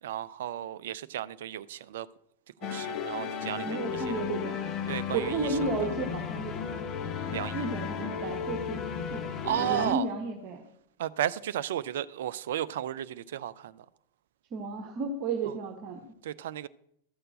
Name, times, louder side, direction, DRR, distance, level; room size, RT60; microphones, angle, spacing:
voice 1, 0.0-2.1 2.6-4.2 4.9-5.9 7.3-7.6 9.4-10.1 11.0-13.8 15.5-15.6 16.2-16.7, right 11 dB, 60° right, 0.5 m, -34 dB
sound 1, 2.6-9.9, left 6 dB, 35° left, 1.0 m, -34 dB
voice 2, 3.6-4.7 5.1-6.9 7.5-8.8 9.1-10.6 14.5-16.0, right 4 dB, 40° right, 1.3 m, -33 dB
13.5 x 6.6 x 6.4 m
figure-of-eight pair, 90°, 0 cm